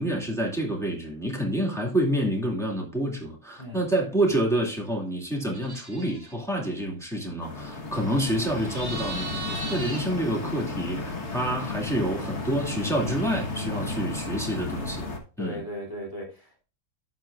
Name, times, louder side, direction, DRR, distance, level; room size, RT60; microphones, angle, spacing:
voice 1, 0.0-15.1 15.4-15.6, right 1 dB, ahead, 2.0 m, -28 dB
sound 1, 5.5-6.3 8.6-10.0, right 2 dB, 15° right, 1.2 m, -37 dB
sound 2, 7.4-15.2, left 3 dB, 45° left, 1.5 m, -33 dB
voice 2, 15.4-16.6, equal, 20° left, 2.9 m, -37 dB
11.0 x 6.1 x 2.3 m
omnidirectional pair, 1.7 m